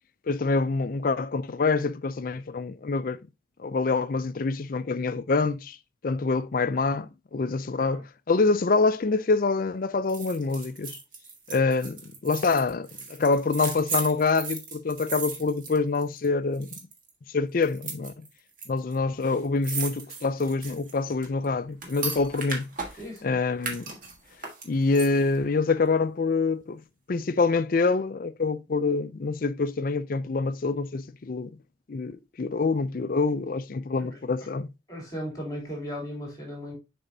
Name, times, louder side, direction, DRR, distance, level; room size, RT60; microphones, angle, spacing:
voice 1, 0.3-3.2 3.6-5.8 6.0-11.0 11.5-16.7 17.3-18.3 18.7-22.7 23.2-23.8 24.6-26.8 27.1-31.5 31.9-34.7, left 4 dB, 45° left, 0.4 m, -26 dB
sound 1, 10.1-16.3 16.5-17.1 17.6-18.7 18.9-19.0 19.2-23.2 23.6-25.4 25.7-25.8, right 4 dB, 45° right, 1.5 m, -36 dB
voice 2, 23.0-23.4 34.0-34.2 34.9-36.7, equal, 20° left, 3.3 m, -36 dB
6.8 x 5.0 x 2.7 m
head